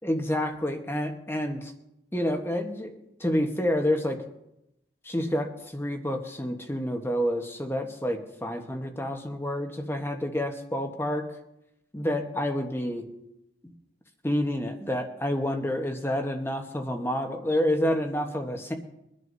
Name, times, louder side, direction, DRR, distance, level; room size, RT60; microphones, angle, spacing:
voice 1, 0.0-1.7 2.1-2.9 3.2-4.2 5.0-11.2 11.9-13.0 14.2-18.7, left 1 dB, 15° left, 4 dB, 1.1 m, -28 dB
23.0 x 11.0 x 2.7 m, 0.85 s
head